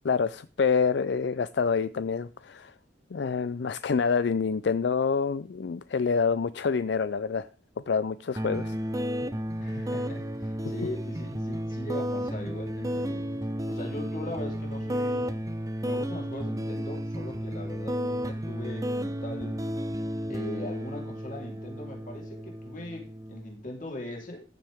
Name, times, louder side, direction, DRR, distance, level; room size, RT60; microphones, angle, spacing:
voice 1, 0.0-2.7 3.1-7.5 7.9-8.7, left 5 dB, 70° left, 0.4 m, -27 dB
sound 1, 8.4-23.4, equal, 20° right, 0.7 m, -32 dB
voice 2, 9.6-13.3 13.7-15.3 15.8-19.6 20.3-24.4, left 1 dB, 45° left, 3.6 m, -40 dB
14.5 x 7.5 x 3.5 m
head